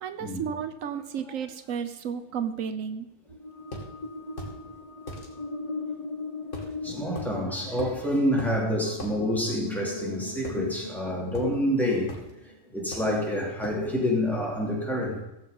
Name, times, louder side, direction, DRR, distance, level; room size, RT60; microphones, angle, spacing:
voice 1, 0.0-3.1, right 7 dB, 85° right, 10 dB, 1.2 m, -33 dB
sound 1, 3.3-12.7, left 3 dB, 30° left, 0.8 m, -39 dB
sound 2, 3.7-3.9 4.4-4.6 5.1-5.3 6.5-6.7 7.1-7.3 7.8-8.0 8.4-8.5 9.0-9.1 10.4-11.0 11.3-11.5 12.1-12.3 12.9-13.2 13.6-13.8, left 1 dB, 70° left, 2.9 m, -38 dB
voice 2, 6.8-12.1 12.7-15.2, equal, ahead, -3 dB, 3.4 m, -27 dB
16.0 x 7.6 x 5.3 m, 0.91 s
omnidirectional pair, 1.3 m